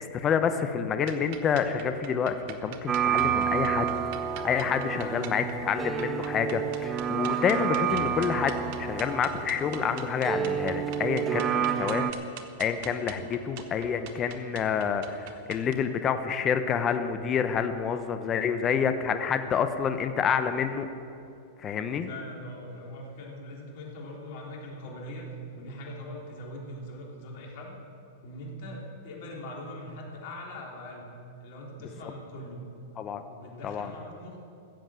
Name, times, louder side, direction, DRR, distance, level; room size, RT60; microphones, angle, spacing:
voice 1, 0.0-12.1 12.6-20.9 21.6-22.1 33.0-33.2 33.6-33.9, left 7 dB, 30° left, 9 dB, 0.9 m, -28 dB
sound 1, 1.0-15.7, right 9 dB, 55° right, 1.3 m, -45 dB
sound 2, 2.9-12.1, right 8 dB, 20° right, 0.7 m, -29 dB
voice 2, 5.0-5.5 11.5-11.9 21.9-27.7 28.2-31.1 31.4-32.6 33.3-34.4, left 1 dB, 55° left, -1 dB, 3.5 m, -41 dB
15.5 x 7.7 x 7.6 m, 2.6 s
hypercardioid pair, 115°, 0 cm